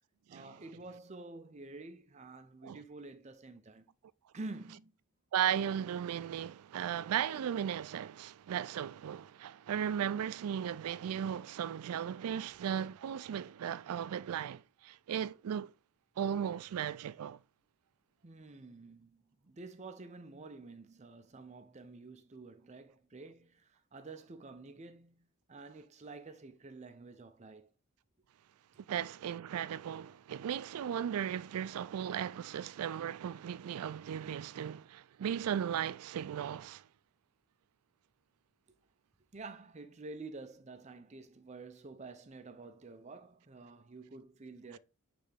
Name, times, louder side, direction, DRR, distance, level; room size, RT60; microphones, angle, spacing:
voice 1, 0.3-3.9 4.3-4.9 18.2-27.7 38.7-38.8 39.3-44.8, right 3 dB, 30° right, 0.5 m, -49 dB
voice 2, 5.3-15.7 16.2-17.4 28.9-36.8, right 9 dB, 85° right, 0.3 m, -36 dB
8.5 x 3.4 x 3.4 m
head